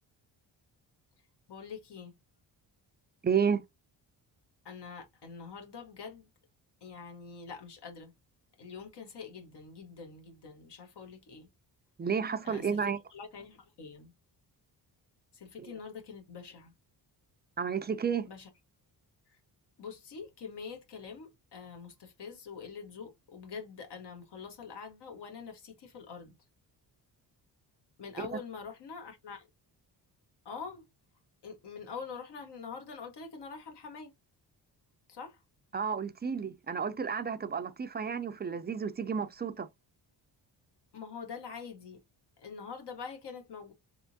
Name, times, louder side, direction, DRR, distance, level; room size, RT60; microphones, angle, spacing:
voice 1, 1.5-2.1 4.6-6.3 6.8-8.1 8.6-11.5 12.4-14.1 15.3-16.7 18.2-18.5 19.3-19.4 19.8-26.4 28.0-29.5 30.4-30.8 31.4-34.1 35.1-35.4 40.9-42.0 42.4-43.7, left 5 dB, 65° left, 1.2 m, -45 dB
voice 2, 3.2-3.6 12.0-13.0 15.6-15.7 17.6-18.3 35.7-39.7, right 6 dB, 25° right, 0.4 m, -31 dB
3.4 x 2.9 x 2.6 m
cardioid pair, 80°, 44 cm